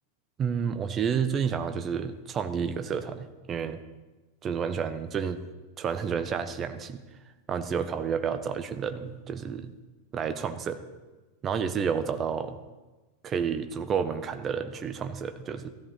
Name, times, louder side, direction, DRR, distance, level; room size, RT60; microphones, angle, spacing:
voice 1, 0.4-3.8 4.4-5.4 5.8-7.0 7.5-9.7 10.1-10.8 11.4-12.6 13.2-15.7, right 6 dB, 25° right, 9 dB, 1.1 m, -30 dB
16.0 x 14.0 x 4.1 m, 1.2 s
figure-of-eight pair, 90°, 0 cm